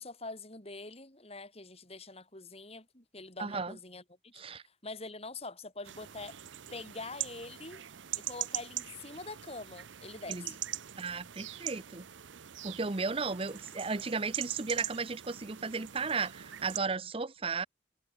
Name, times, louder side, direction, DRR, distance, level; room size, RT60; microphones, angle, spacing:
voice 1, 0.0-4.3 4.7-6.4 6.7-7.8 8.1-10.6, left 3 dB, 35° left, 5.5 m, -45 dB
voice 2, 3.4-3.8 4.3-4.6 10.3-10.5 11.0-12.0 12.6-17.7, right 4 dB, 30° right, 0.7 m, -35 dB
sound 1, 5.8-16.8, right 13 dB, 90° right, 0.8 m, -42 dB
head